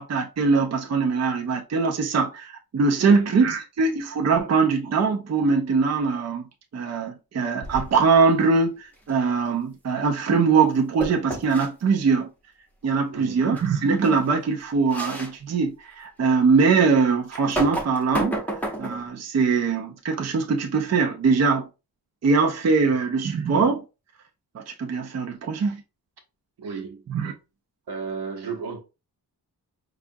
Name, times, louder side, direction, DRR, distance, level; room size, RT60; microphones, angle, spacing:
voice 1, 0.0-12.3 12.8-18.4 18.8-21.7 22.2-23.8 24.5-25.8 27.1-27.3, right 4 dB, 40° right, 0.5 m, -22 dB
voice 2, 3.0-3.4 13.1-13.6 22.8-22.9 26.6-27.1 27.9-28.8, right 5 dB, 80° right, 1.0 m, -34 dB
sound 1, 7.6-8.1 11.0-11.7 13.6-13.7 14.0-14.2 14.9-15.3 15.9-16.0 17.3-19.1, right 1 dB, 5° left, 0.8 m, -30 dB
4.8 x 2.3 x 2.6 m
wide cardioid pair, 140°, 39 cm